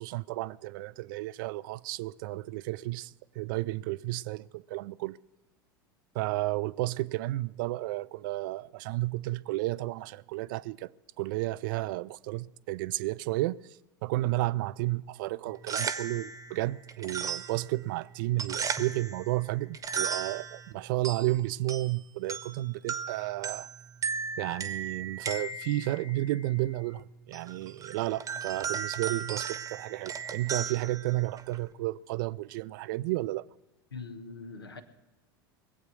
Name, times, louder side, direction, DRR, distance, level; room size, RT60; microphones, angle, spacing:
voice 1, 0.0-5.2 6.1-10.9 11.2-13.6 14.0-23.7 24.4-33.5, right 18 dB, 60° right, 0.4 m, -32 dB
sound 1, 15.5-31.7, right 6 dB, 25° right, 0.9 m, -37 dB
voice 2, 33.9-34.8, left 4 dB, 90° left, 1.2 m, -42 dB
20.5 x 8.1 x 6.2 m
hypercardioid pair, 80°, 12 cm